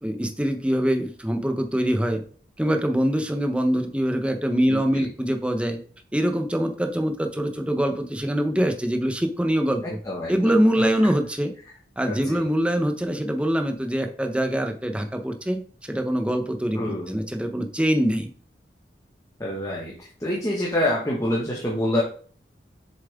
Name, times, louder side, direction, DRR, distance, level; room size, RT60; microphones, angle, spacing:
voice 1, 0.0-2.2 2.6-5.8 6.1-10.0 10.3-11.5 12.0-18.3, equal, 5° right, 5 dB, 0.8 m, -24 dB
voice 2, 4.7-5.1 10.0-10.5 12.0-12.4 16.7-17.1 19.4-22.0, left 1 dB, 20° left, -4 dB, 1.6 m, -27 dB
7.3 x 7.1 x 3.6 m, 0.43 s
head